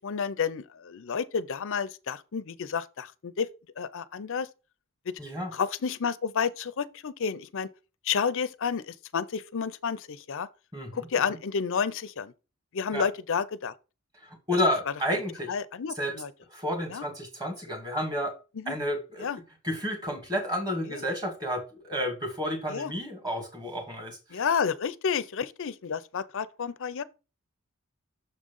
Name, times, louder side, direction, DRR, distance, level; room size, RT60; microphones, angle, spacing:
voice 1, 0.0-3.5 3.8-4.5 5.5-7.7 8.1-10.5 10.9-12.3 12.7-13.7 15.5-16.3 16.9-17.0 18.6-18.8 19.2-19.4 20.9-21.0 22.7-22.9 24.3-27.0, left 6 dB, 60° left, 0.5 m, -30 dB
voice 2, 5.2-5.5 10.7-11.4 12.9-13.1 14.2-15.6 16.0-16.1 16.5-18.3 18.7-19.3 19.6-24.4, equal, 20° right, 2.2 m, -31 dB
6.8 x 3.7 x 5.3 m
head